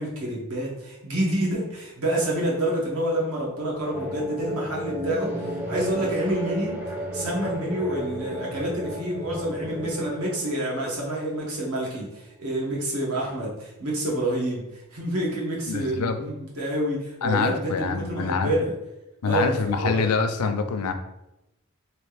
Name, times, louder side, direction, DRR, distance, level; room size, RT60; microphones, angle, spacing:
voice 1, 0.0-6.8 7.1-18.7 19.2-20.2, right 1 dB, 70° right, -4 dB, 1.3 m, -28 dB
sound 1, 3.9-11.9, equal, 10° right, 0.5 m, -33 dB
voice 2, 15.7-16.2 17.2-18.5 19.2-20.9, left 4 dB, 75° left, 7 dB, 0.4 m, -25 dB
3.3 x 2.8 x 3.3 m, 0.92 s
head